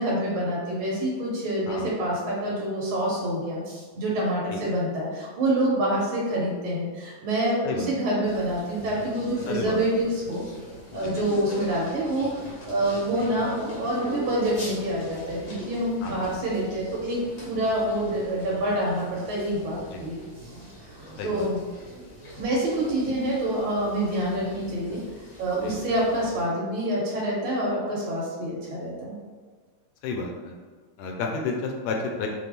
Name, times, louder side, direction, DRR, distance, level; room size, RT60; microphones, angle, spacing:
voice 1, 0.0-10.4 10.9-17.2 17.5-20.5 20.8-21.6 22.4-25.0 25.4-29.2, right 1 dB, 80° right, -5 dB, 2.4 m, -27 dB
sound 1, 8.2-26.4, right 1 dB, 60° left, 0.9 m, -42 dB
voice 2, 9.5-9.8 10.9-11.2 16.0-16.2 19.9-20.0 21.2-21.5 23.1-23.2 25.6-25.8 30.0-30.5 31.0-32.3, left 4 dB, 80° left, 1 dB, 1.8 m, -31 dB
5.8 x 2.3 x 3.4 m, 1.5 s
omnidirectional pair, 3.3 m